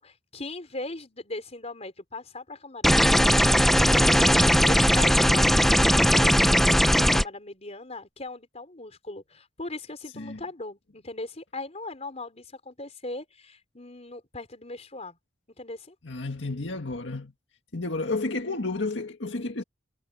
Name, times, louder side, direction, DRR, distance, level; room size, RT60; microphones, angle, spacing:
voice 1, 0.0-15.2 15.6-15.9, left 2 dB, 35° left, 4.5 m, -39 dB
sound 1, 2.8-7.2, equal, ahead, 1.0 m, -19 dB
voice 2, 16.0-17.3 17.7-19.6, left 3 dB, 75° left, 1.9 m, -31 dB
head